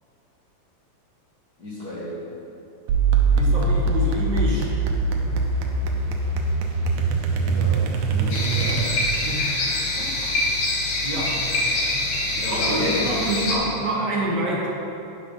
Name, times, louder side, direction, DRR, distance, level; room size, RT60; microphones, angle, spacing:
voice 1, 1.6-2.3 7.3-8.9 11.3-11.6 12.3-13.1, left 1 dB, 40° left, -8 dB, 1.8 m, -33 dB
sound 1, 2.9-9.2, right 3 dB, 90° right, 2.2 m, -22 dB
voice 2, 3.3-4.7 9.2-9.6 10.0-10.4 11.0-11.3 11.9-12.0 12.4-14.7, right 1 dB, 50° right, -4 dB, 1.3 m, -27 dB
sound 2, 8.3-13.5, left 2 dB, 65° left, 2.5 m, -25 dB
9.4 x 5.9 x 5.6 m, 2.9 s
omnidirectional pair, 3.4 m